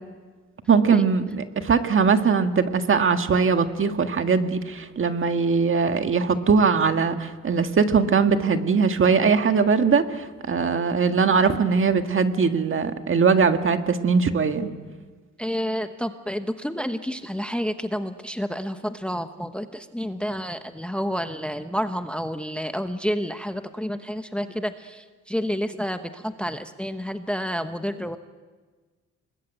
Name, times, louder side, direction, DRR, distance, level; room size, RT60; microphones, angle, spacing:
voice 1, 0.7-14.7, right 5 dB, 45° right, 7 dB, 1.7 m, -21 dB
voice 2, 15.4-25.0 25.3-28.2, equal, 5° left, 8 dB, 1.0 m, -29 dB
25.5 x 20.5 x 9.0 m, 1.4 s
cardioid pair, 90°, 30 cm